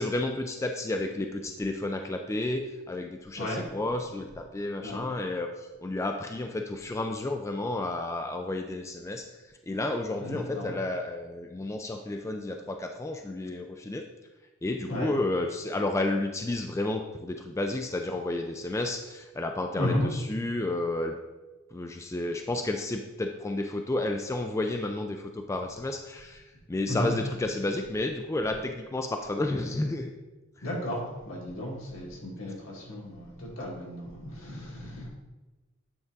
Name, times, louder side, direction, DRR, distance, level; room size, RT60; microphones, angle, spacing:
voice 1, 0.0-5.5 5.8-9.3 9.7-14.1 14.6-21.1 21.7-26.4 26.7-30.1, left 2 dB, 15° left, 4 dB, 0.3 m, -31 dB
voice 2, 10.2-10.8 14.9-15.1 19.8-20.0 22.3-22.4 26.8-27.1 30.6-35.1, left 1 dB, 75° left, -3 dB, 2.0 m, -34 dB
8.6 x 3.6 x 3.9 m, 1.1 s
head